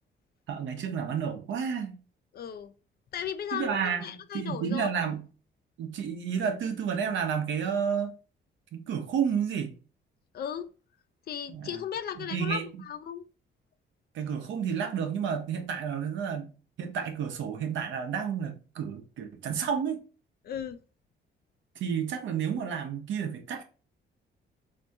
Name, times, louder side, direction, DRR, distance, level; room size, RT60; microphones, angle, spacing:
voice 1, 0.5-2.0 3.5-4.0 4.3-5.2 5.8-8.1 8.7-9.7 11.5-11.8 12.2-12.7 14.1-16.5 16.8-20.0 21.8-23.6, right 7 dB, 70° right, 0.8 m, -31 dB
voice 2, 2.3-2.7 3.1-4.9 10.3-10.7 11.3-13.3 20.4-20.8, left 9 dB, 50° left, 0.4 m, -36 dB
3.4 x 2.7 x 2.7 m
cardioid pair, 90°, 20 cm